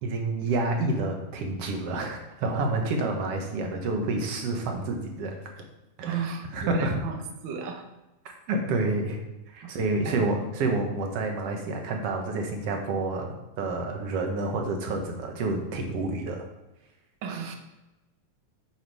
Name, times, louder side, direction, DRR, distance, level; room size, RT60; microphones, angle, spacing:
voice 1, 0.0-5.4 6.0-6.9 8.5-9.2 9.5-16.5, right 2 dB, 60° right, 3 dB, 1.8 m, -29 dB
voice 2, 6.0-7.8 9.6-9.7 10.0-10.3 17.2-17.6, right 6 dB, 80° right, 3 dB, 1.0 m, -34 dB
8.2 x 5.1 x 4.6 m, 1.0 s
omnidirectional pair, 3.4 m